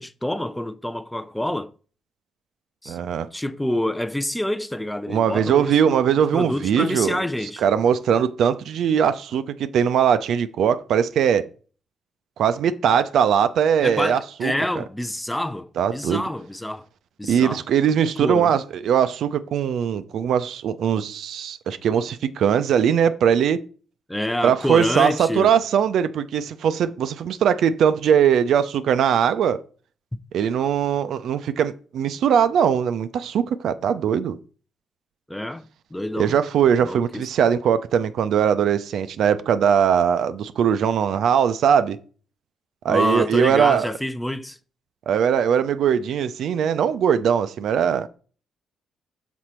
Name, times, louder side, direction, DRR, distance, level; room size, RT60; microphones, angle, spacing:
voice 1, 0.0-1.7 2.8-3.0 3.3-5.9 6.3-7.6 13.8-16.9 17.2-17.6 18.2-18.6 24.1-25.5 35.3-36.4 36.8-37.2 42.9-44.6, left 1 dB, 10° left, 0.5 m, -27 dB
voice 2, 2.9-3.3 5.1-7.2 7.6-11.5 12.4-14.8 15.8-16.2 17.3-23.6 24.4-29.6 30.3-34.4 36.2-42.0 42.8-43.9 45.1-48.1, right 8 dB, 65° right, 0.4 m, -20 dB
6.2 x 4.0 x 4.3 m
hypercardioid pair, 45°, 0 cm